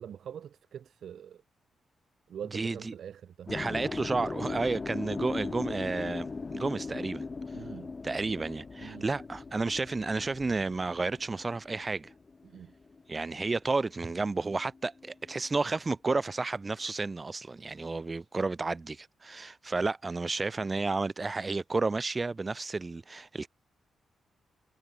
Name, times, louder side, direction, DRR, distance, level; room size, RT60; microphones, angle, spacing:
voice 1, 0.0-1.4 2.3-3.5 7.5-7.9 8.8-9.0 12.4-12.7, right 9 dB, 60° right, 1.1 m, -43 dB
voice 2, 2.5-2.9 3.5-7.2 8.0-12.1 13.1-23.5, right 3 dB, 20° right, 0.4 m, -32 dB
sound 1, 3.5-13.6 13.9-15.5, left 4 dB, 25° left, 2.5 m, -39 dB
wide cardioid pair, 175°, 0 cm